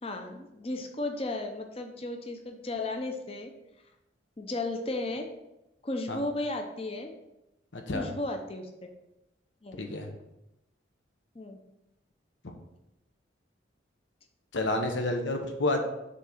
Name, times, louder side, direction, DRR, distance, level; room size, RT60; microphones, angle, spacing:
voice 1, 0.0-3.5 4.4-5.3 5.8-7.1 7.9-8.9 9.6-9.8 11.3-11.6, left 2 dB, 30° left, 4 dB, 0.7 m, -34 dB
voice 2, 7.7-8.1 9.8-10.1 14.5-15.8, left 2 dB, 75° left, 4 dB, 1.0 m, -29 dB
6.5 x 3.7 x 5.8 m, 0.91 s
head